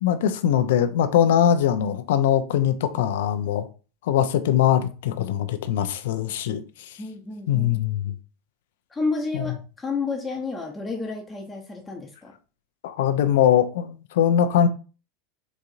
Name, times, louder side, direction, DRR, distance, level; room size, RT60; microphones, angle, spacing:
voice 1, 0.0-3.7 4.0-6.9 7.5-8.1 9.3-9.4 12.8-14.7, left 10 dB, 65° left, 0.5 m, -22 dB
voice 2, 7.0-7.8 8.9-12.3, left 4 dB, 20° left, 0.8 m, -30 dB
4.1 x 3.6 x 2.5 m
hypercardioid pair, 85°, 0 cm